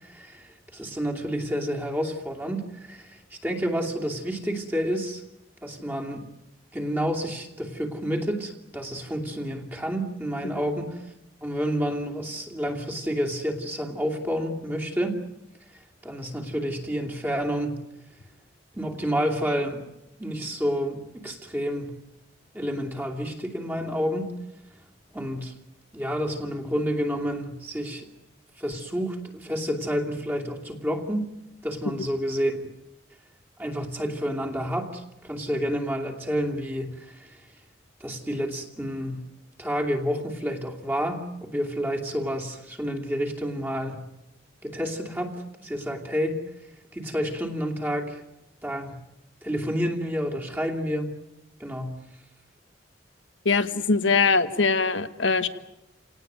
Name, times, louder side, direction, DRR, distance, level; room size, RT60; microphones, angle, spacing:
voice 1, 0.0-5.2 5.6-6.2 6.7-11.0 11.4-15.2 16.0-17.8 18.7-19.8 20.2-21.9 22.5-24.3 25.1-25.5 25.9-28.1 28.6-31.3 31.6-32.6 33.6-37.4 38.0-39.3 39.6-44.1 44.6-46.4 46.9-48.2 48.6-49.0 49.4-51.1 51.6-52.0, equal, 10° right, 0 dB, 2.7 m, -29 dB
voice 2, 53.4-55.5, left 4 dB, 75° left, 11 dB, 1.5 m, -22 dB
29.0 x 18.5 x 9.2 m, 0.93 s
head